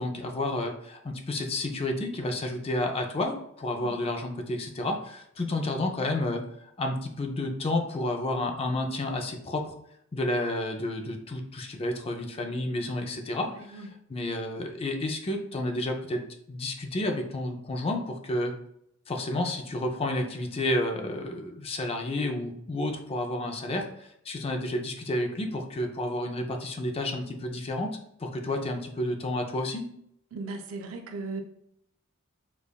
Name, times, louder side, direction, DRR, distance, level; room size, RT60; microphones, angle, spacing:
voice 1, 0.0-6.4 6.8-9.7 10.1-16.2 16.5-18.5 19.1-27.9 28.2-29.9, left 1 dB, 30° left, 4 dB, 0.4 m, -31 dB
voice 2, 13.4-13.9 30.3-31.4, right 3 dB, 80° right, 4 dB, 0.5 m, -37 dB
5.1 x 2.3 x 2.2 m, 0.73 s
head